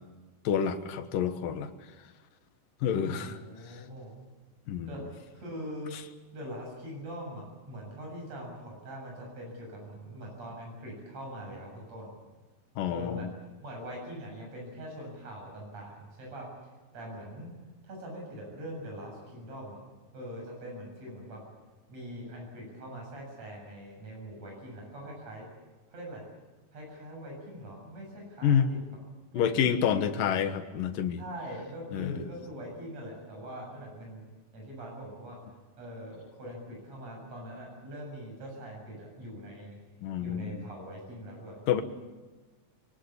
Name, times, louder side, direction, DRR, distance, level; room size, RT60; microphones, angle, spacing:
voice 1, 0.4-1.7 2.8-3.4 4.7-4.9 12.8-13.3 28.4-28.7 29.3-31.2 31.9-32.2 40.0-40.6 41.7-41.8, left 8 dB, 85° left, 8 dB, 3.0 m, -28 dB
voice 2, 3.1-4.2 4.9-6.0 6.3-12.1 12.9-13.3 13.6-16.5 16.9-17.5 17.8-19.8 20.1-21.4 21.9-25.5 25.9-26.2 26.7-28.8 29.3-29.7 31.2-34.3 34.5-35.4 35.8-39.8 40.2-41.8, equal, 50° right, -1 dB, 8.6 m, -42 dB
23.5 x 20.5 x 8.6 m, 1.2 s
omnidirectional pair, 3.8 m